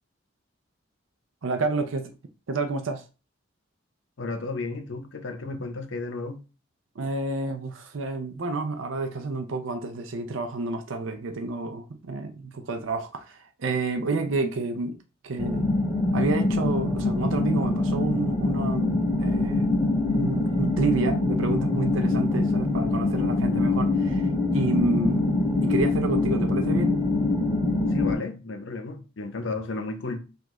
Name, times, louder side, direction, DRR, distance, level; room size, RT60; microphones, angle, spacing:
voice 1, 1.4-2.1 2.5-3.0 7.0-15.0 15.2-15.7 16.1-24.2 24.5-27.0, right 3 dB, 90° right, 0.6 m, -29 dB
voice 2, 4.2-6.4 27.9-30.2, left 3 dB, 75° left, 0.7 m, -33 dB
sound 1, 15.4-28.1, left 2 dB, 10° right, 2.1 m, -24 dB
4.9 x 2.5 x 3.6 m
head